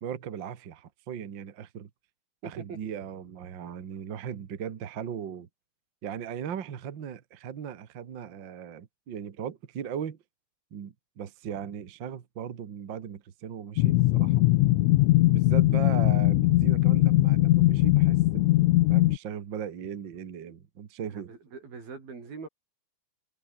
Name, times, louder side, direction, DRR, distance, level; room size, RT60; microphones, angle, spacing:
voice 1, 0.0-1.9 2.4-5.5 6.0-10.2 10.7-14.5 15.3-18.6 18.9-21.3, right 8 dB, 45° right, 1.7 m, -38 dB
voice 2, 2.4-2.8 21.1-22.5, right 5 dB, 90° right, 7.9 m, -42 dB
sound 1, 13.8-19.2, left 18 dB, 80° left, 1.7 m, -21 dB
omnidirectional pair, 4.1 m